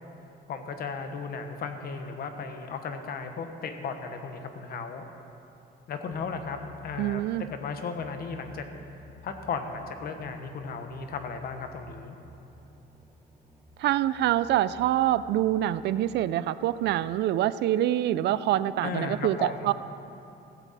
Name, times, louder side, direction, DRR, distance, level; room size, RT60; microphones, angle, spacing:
voice 1, 0.5-5.0 5.9-6.6 6.8-7.2 7.5-8.6 9.2-12.2 18.8-19.7, left 5 dB, 50° left, 6 dB, 1.1 m, -35 dB
sound 1, 6.1-17.4, equal, 10° right, 0.6 m, -52 dB
voice 2, 7.0-7.4 13.8-19.7, right 13 dB, 60° right, 15 dB, 0.4 m, -25 dB
15.5 x 15.0 x 4.1 m, 2.8 s
cardioid pair, 170°, 20 cm